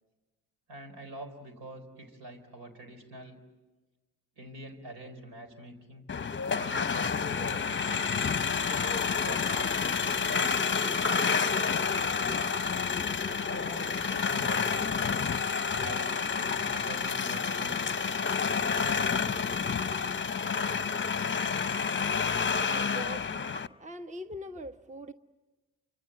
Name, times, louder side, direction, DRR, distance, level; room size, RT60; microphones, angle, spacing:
voice 1, 0.7-3.4 4.4-6.0 6.4-8.1 8.9-10.7 11.2-12.3 13.2-14.9 15.8-17.8 18.5-19.4, right 1 dB, 70° right, 6 dB, 4.1 m, -45 dB
sound 1, 6.1-23.7, left 5 dB, 25° left, 0.8 m, -29 dB
voice 2, 22.7-23.5 23.8-25.1, equal, 15° right, 10 dB, 1.0 m, -41 dB
29.0 x 25.0 x 7.9 m, 1.2 s
hypercardioid pair, 40°, 42 cm